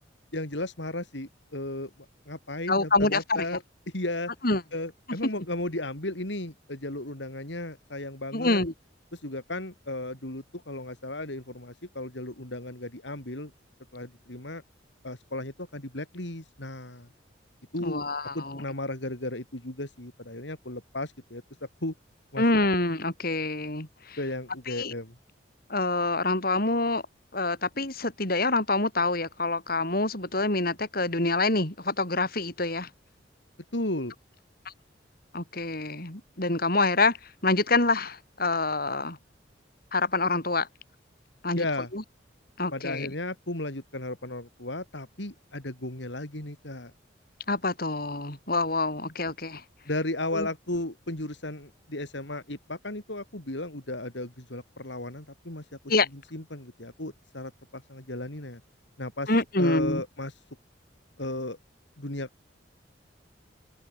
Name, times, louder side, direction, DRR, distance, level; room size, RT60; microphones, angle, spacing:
voice 1, 0.3-1.9 2.3-3.6 3.9-4.3 4.7-8.6 9.1-13.5 13.9-14.6 15.0-17.1 17.7-18.0 18.3-21.4 21.8-21.9 22.3-22.4 24.2-25.2 33.7-34.1 41.6-41.9 42.7-46.9 49.9-55.6 56.3-58.6 59.0-59.3 59.6-60.3 61.2-61.6 62.0-62.3, left 1 dB, 70° left, 4.1 m, -35 dB
voice 2, 2.7-3.4 4.4-4.6 8.3-8.7 17.8-18.6 22.4-24.2 24.7-24.9 25.7-27.0 27.3-32.9 35.3-37.2 37.4-39.2 39.9-40.7 41.4-41.6 41.9-42.0 42.6-43.1 47.5-49.6 50.3-50.5 55.9-56.1 59.3-60.0, left 2 dB, 50° left, 5.9 m, -26 dB
open air
head